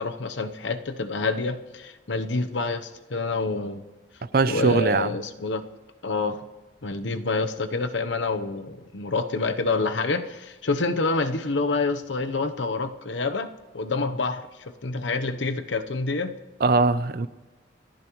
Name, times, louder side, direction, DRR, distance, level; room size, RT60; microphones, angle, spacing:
voice 1, 0.0-3.8 4.4-5.6 6.0-6.4 6.8-16.4, left 3 dB, 80° left, 9 dB, 0.9 m, -27 dB
voice 2, 4.3-5.1 16.6-17.3, right 3 dB, 50° right, 15 dB, 0.5 m, -21 dB
28.5 x 10.5 x 3.1 m, 1.2 s
head